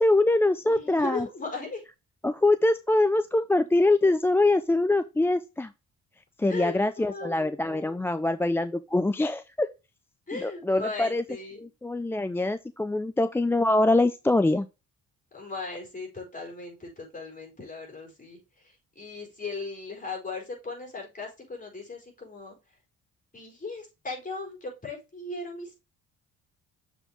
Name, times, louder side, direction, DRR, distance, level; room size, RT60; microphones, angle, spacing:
voice 1, 0.0-1.3 2.2-5.7 6.4-9.7 10.3-11.2 11.6-14.7, left 2 dB, 10° left, 0.3 m, -24 dB
voice 2, 0.7-1.8 6.5-7.5 10.3-11.6 15.3-18.4 19.0-22.6 23.3-25.7, left 3 dB, 25° left, 4.5 m, -37 dB
6.9 x 4.6 x 3.4 m
cardioid pair, 90°, 30 cm